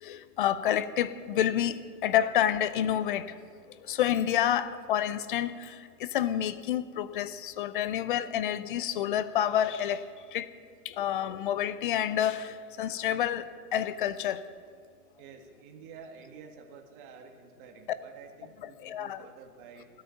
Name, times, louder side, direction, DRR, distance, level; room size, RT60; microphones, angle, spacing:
voice 1, 0.0-3.3 3.9-10.0 10.3-10.5 10.8-14.4 18.6-19.2, left 10 dB, 35° left, 15 dB, 0.6 m, -29 dB
voice 2, 15.2-19.9, right 6 dB, 35° right, 4 dB, 1.8 m, -50 dB
17.5 x 12.5 x 5.7 m, 2.1 s
hypercardioid pair, 140°, 47 cm